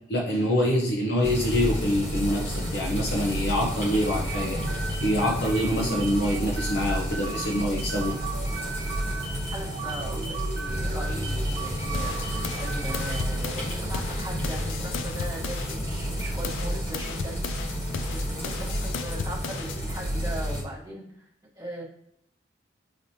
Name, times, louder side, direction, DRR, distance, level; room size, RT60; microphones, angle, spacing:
voice 1, 0.0-8.2, equal, 60° left, -1 dB, 0.7 m, -26 dB
sound 1, 1.2-20.6, equal, 35° left, 1.1 m, -31 dB
sound 2, 3.9-13.5, right 4 dB, 70° right, 1.0 m, -37 dB
voice 2, 9.5-21.3 21.5-21.8, right 1 dB, 20° right, -6 dB, 1.1 m, -39 dB
sound 3, 11.9-15.8 16.2-19.8, left 6 dB, 85° left, 0.3 m, -36 dB
4.9 x 2.9 x 2.8 m, 0.72 s
head